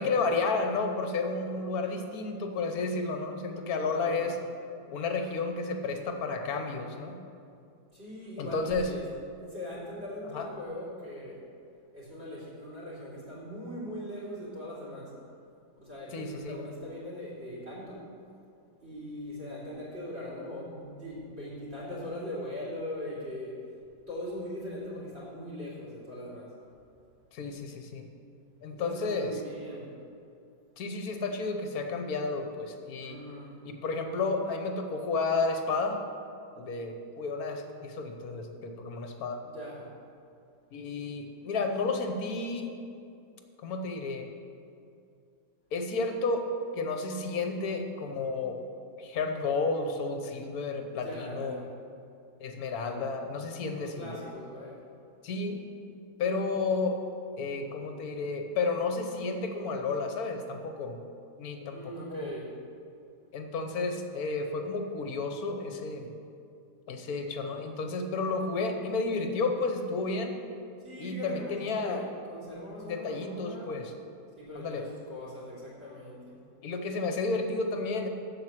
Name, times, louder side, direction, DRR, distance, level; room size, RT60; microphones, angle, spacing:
voice 1, 0.0-4.3 4.9-7.1 8.4-8.9 10.3-10.5 16.1-16.6 27.3-28.1 28.6-29.3 30.8-33.2 33.6-36.0 36.6-39.4 40.7-42.7 43.6-44.3 45.7-46.4 46.8-48.6 49.0-51.6 52.4-54.2 55.2-55.6 56.2-57.0 57.4-61.0 61.4-62.3 63.3-66.1 66.9-70.3 71.0-72.0 72.8-73.9 74.5-74.8 76.6-78.1, left 3 dB, 60° left, 5 dB, 1.2 m, -32 dB
voice 2, 3.8-4.3 7.9-9.1 9.4-11.4 11.9-15.1 15.8-18.0 18.8-23.6 24.1-26.5 28.7-29.9 33.0-33.5 39.4-39.8 50.9-51.6 53.7-54.8 61.7-62.5 70.8-73.7 74.4-76.4, left 1 dB, 35° right, -7 dB, 3.1 m, -40 dB
7.6 x 7.2 x 7.6 m, 2.5 s
omnidirectional pair, 2.0 m